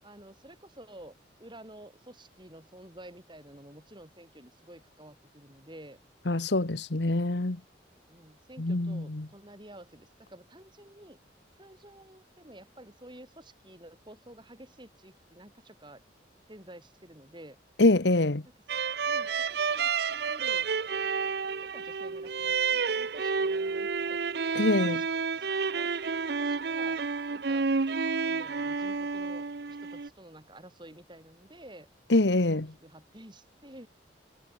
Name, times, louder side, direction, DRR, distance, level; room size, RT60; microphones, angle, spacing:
voice 1, 0.0-6.0 8.1-11.2 11.6-16.0 16.5-17.6 18.5-18.8 19.1-20.7 21.6-24.2 24.6-25.0 25.4-27.7 28.2-31.9 32.5-33.9, right 1 dB, 25° right, 7.1 m, -51 dB
voice 2, 6.3-7.6 8.6-9.3 17.8-18.4 24.6-25.0 32.1-32.7, left 2 dB, 70° left, 1.3 m, -25 dB
sound 1, 18.7-30.1, right 5 dB, 60° right, 0.7 m, -30 dB
head